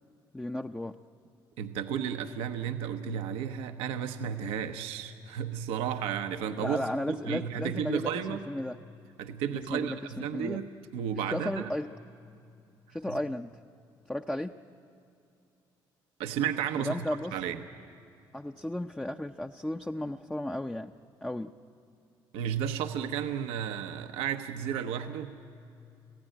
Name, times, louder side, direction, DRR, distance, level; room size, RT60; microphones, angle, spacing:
voice 1, 0.3-0.9 6.6-8.8 9.5-10.6 11.3-11.9 12.9-13.5 14.1-14.5 16.8-17.3 18.3-20.9 21.2-21.5, left 1 dB, 10° left, 4 dB, 0.6 m, -34 dB
voice 2, 1.6-6.8 7.1-8.4 9.2-11.7 13.1-13.2 16.2-17.6 22.3-25.4, right 8 dB, 85° right, 6 dB, 0.8 m, -33 dB
26.5 x 16.0 x 9.1 m, 2.6 s
supercardioid pair, 75°, 10 cm